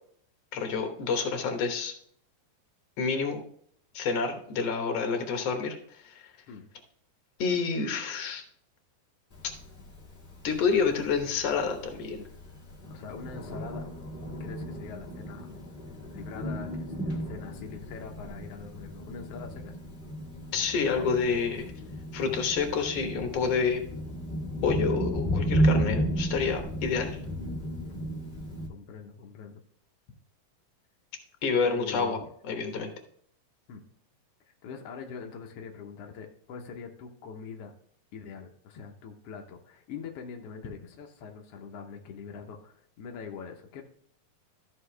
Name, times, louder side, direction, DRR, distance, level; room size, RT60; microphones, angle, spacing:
voice 1, 0.5-1.9 3.0-3.4 3.9-6.2 7.4-8.4 10.4-12.2 20.5-21.7 22.1-23.8 24.6-27.2 31.4-32.2 32.4-32.9, left 5 dB, 60° left, 4 dB, 1.8 m, -28 dB
Thunder, 9.3-28.7, right 1 dB, 30° left, 0.9 m, -34 dB
voice 2, 12.9-13.9 14.4-15.5 16.1-19.8 27.9-28.0 28.7-29.6 31.6-32.3 33.7-33.8 34.6-37.7 38.1-43.8, left 6 dB, 80° left, 2 dB, 1.3 m, -43 dB
13.5 x 5.4 x 3.3 m, 0.62 s
omnidirectional pair, 4.0 m